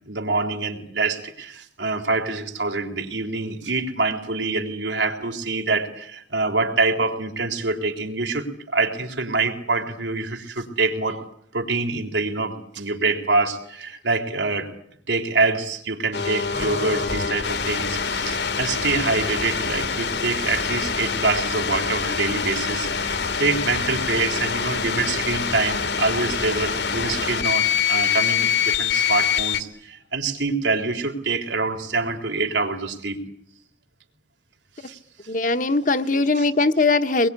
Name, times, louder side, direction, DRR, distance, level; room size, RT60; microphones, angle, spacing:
voice 1, 0.1-11.3 11.5-14.7 15.1-33.2 34.8-35.0 36.4-36.5, right 3 dB, 90° right, 3.8 m, -25 dB
sound 1, 16.1-29.6, left 6 dB, 80° left, 2.1 m, -25 dB
voice 2, 35.3-37.3, left 3 dB, 45° left, 1.0 m, -20 dB
24.5 x 21.5 x 9.8 m
head